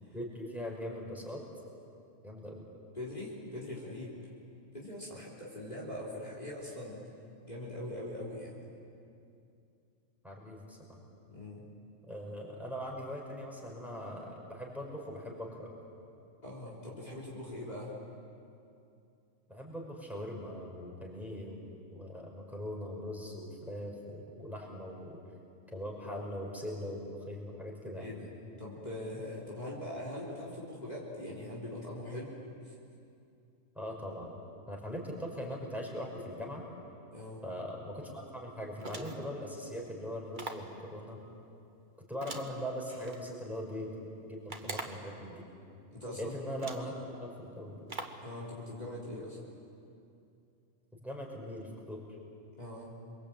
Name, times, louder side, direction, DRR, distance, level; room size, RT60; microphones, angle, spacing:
voice 1, 0.1-1.4 2.2-2.7 10.2-11.0 12.1-15.7 19.5-25.2 25.7-28.1 33.8-34.3 34.7-36.6 37.4-41.2 42.1-45.4 46.2-46.9 47.2-47.8 50.9-52.0, equal, ahead, -2 dB, 5.5 m, -41 dB
voice 2, 3.0-4.2 4.7-7.0 7.4-8.6 11.3-11.6 16.4-18.0 28.0-28.3 28.6-32.4 32.6-32.7 37.1-37.4 44.6-44.8 45.9-46.3 48.2-49.4 52.6-52.9, left 1 dB, 35° left, -5 dB, 3.9 m, -42 dB
sound 1, 38.8-39.4 40.3-40.7 42.2-43.2 44.5-45.1 46.0-46.1 46.6-47.0 47.9-48.3, right 3 dB, 40° right, 1.7 m, -43 dB
28.5 x 23.0 x 8.8 m, 2.6 s
omnidirectional pair, 1.3 m